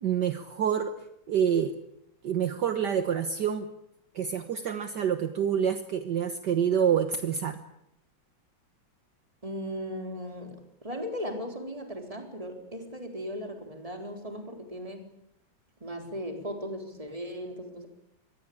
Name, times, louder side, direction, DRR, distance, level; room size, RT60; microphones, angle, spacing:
voice 1, 0.0-0.9 1.3-1.7 2.2-3.7 4.2-7.6, right 8 dB, 60° right, 9 dB, 1.8 m, -27 dB
voice 2, 9.4-15.1 15.8-17.9, equal, 15° right, 4 dB, 4.0 m, -37 dB
25.0 x 20.5 x 8.7 m, 0.80 s
omnidirectional pair, 2.2 m